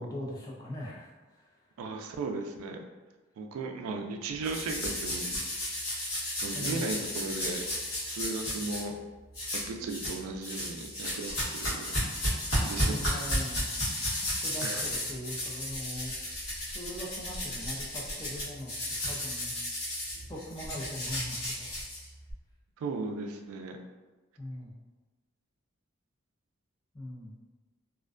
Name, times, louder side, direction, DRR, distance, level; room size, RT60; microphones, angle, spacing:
voice 1, 0.0-1.6 2.0-2.1 6.5-6.9 12.6-13.7 14.4-16.1 16.7-18.7 19.0-19.5 20.3-21.8 24.4-24.8 26.9-27.4, left 1 dB, 15° left, -4 dB, 0.4 m, -40 dB
voice 2, 1.8-2.8 3.4-5.4 6.4-7.6 8.0-8.9 9.5-12.0 12.6-13.2 14.6-14.9 22.8-23.8, right 3 dB, 90° right, 7 dB, 0.3 m, -36 dB
sound 1, 4.4-8.8 9.3-10.2 10.4-22.3, left 1 dB, 60° left, 1.0 m, -33 dB
2.4 x 2.1 x 2.4 m, 1.2 s
head